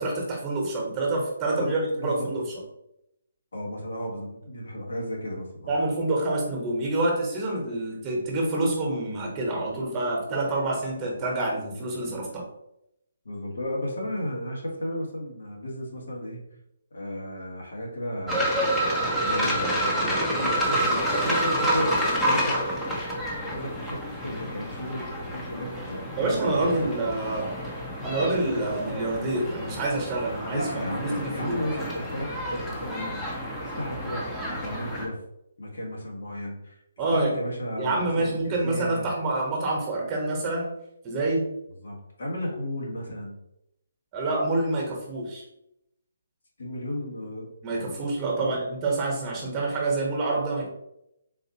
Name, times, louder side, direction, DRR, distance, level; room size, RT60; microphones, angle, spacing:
voice 1, 0.0-2.4 5.7-12.4 26.2-27.6 28.0-30.6 31.0-31.6 37.0-37.3 37.8-40.7 41.0-41.5 44.1-45.4 47.6-50.7, right 2 dB, 20° right, -2 dB, 1.1 m, -27 dB
voice 2, 1.5-2.3 3.5-5.8 13.2-16.4 16.9-18.5 19.2-22.8 23.5-26.9 30.5-35.2 35.6-36.8 37.1-39.1 41.8-43.4 46.6-47.5 48.3-48.5, left 1 dB, 70° left, -2 dB, 1.3 m, -34 dB
sound 1, 18.3-35.1, equal, 5° left, 0.8 m, -29 dB
3.9 x 2.8 x 2.8 m, 0.82 s
figure-of-eight pair, 140°, 0 cm